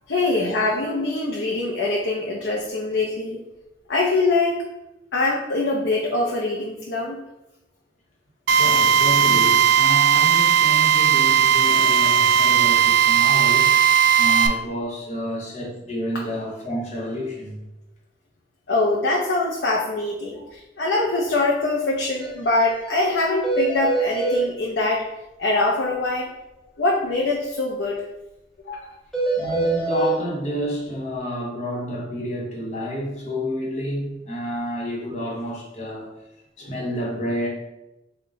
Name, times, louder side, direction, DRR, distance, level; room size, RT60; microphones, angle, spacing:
voice 1, 0.1-3.4 3.9-4.6 5.1-7.2 18.7-25.0 25.4-26.3 26.8-28.0 28.7-28.9, left 2 dB, 75° left, -2 dB, 0.5 m, -23 dB
Drill, 8.5-14.5, right 8 dB, 75° right, 0.4 m, -17 dB
voice 2, 8.6-13.8 14.2-17.6 29.4-36.1 36.6-37.5, equal, 40° left, -3 dB, 0.9 m, -29 dB
sound 1, 22.2-22.3 22.6-22.7 23.0-23.1 23.4-24.4 29.1-30.1, right 3 dB, ahead, 0.7 m, -23 dB
3.7 x 2.2 x 3.9 m, 0.95 s
head